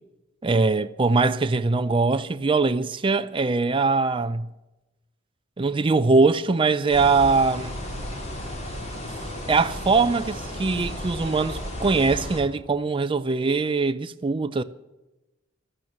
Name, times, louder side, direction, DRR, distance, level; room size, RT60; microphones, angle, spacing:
voice 1, 0.4-4.5 5.6-7.7 9.5-14.6, right 4 dB, 25° right, 0.4 m, -22 dB
sound 1, 6.9-12.4, left 1 dB, 35° left, 3.4 m, -34 dB
15.0 x 12.5 x 7.7 m
head